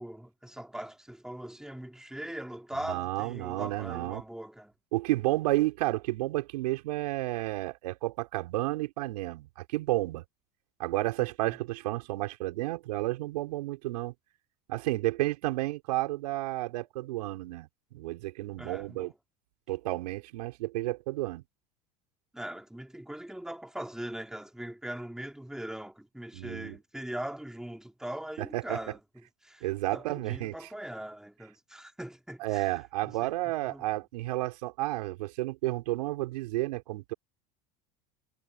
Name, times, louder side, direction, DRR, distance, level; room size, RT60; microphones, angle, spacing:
voice 1, 0.0-4.7 11.5-11.6 18.6-19.1 22.3-29.0 29.4-29.6 29.9-32.7 33.0-33.3 33.6-33.8, right 1 dB, 5° right, 2.8 m, -41 dB
voice 2, 2.8-4.2 4.9-10.2 10.8-14.1 14.7-19.1 19.7-21.4 26.3-26.8 28.4-28.8 29.6-30.7 32.4-37.1, right 18 dB, 80° right, 4.8 m, -31 dB
hypercardioid pair, 95°, 20 cm